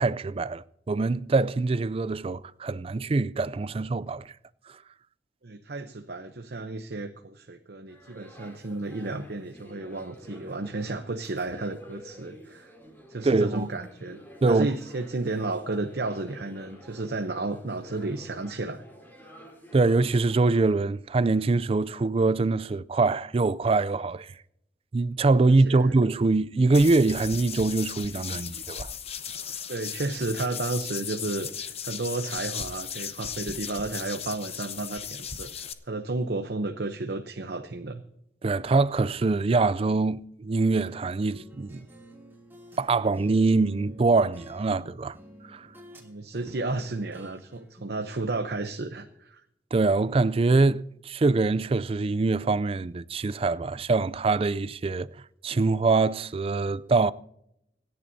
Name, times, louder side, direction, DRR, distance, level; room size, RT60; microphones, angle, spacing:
voice 1, 0.0-4.3 13.2-13.7 14.4-14.7 19.7-24.3 24.9-28.9 38.4-41.8 42.8-45.1 45.5-45.7 49.7-55.1 55.4-57.1, right 3 dB, 35° right, 0.4 m, -24 dB
voice 2, 5.4-12.7 13.1-14.2 14.5-18.9 19.2-19.3 25.7-25.9 29.7-38.0 46.0-49.4, right 2 dB, 65° right, 0.8 m, -32 dB
sound 1, 7.9-20.7, equal, 10° left, 3.7 m, -50 dB
sound 2, 26.7-35.7, left 8 dB, 35° left, 0.9 m, -36 dB
sound 3, 40.8-42.8 43.1-46.1 46.3-48.2, equal, 15° right, 2.7 m, -50 dB
26.0 x 10.5 x 2.7 m
head